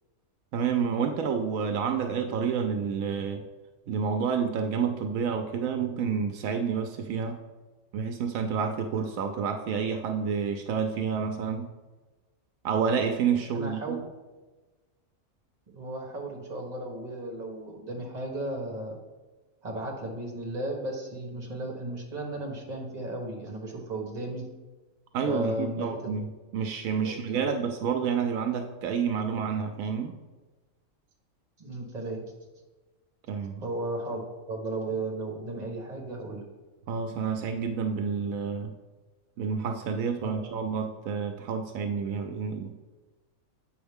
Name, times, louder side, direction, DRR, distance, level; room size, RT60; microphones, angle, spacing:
voice 1, 0.5-3.4 3.9-7.4 7.9-11.7 12.6-14.0 25.1-30.1 33.3-33.6 36.9-38.7 39.4-42.7, right 6 dB, 80° right, 6 dB, 1.0 m, -29 dB
voice 2, 13.3-14.0 15.7-19.0 19.6-24.5 25.2-26.1 27.0-27.6 31.6-32.3 33.6-34.2 34.5-36.4 40.2-40.4, right 1 dB, 30° right, 1 dB, 1.3 m, -35 dB
7.8 x 5.4 x 3.5 m, 1.2 s
omnidirectional pair, 1.4 m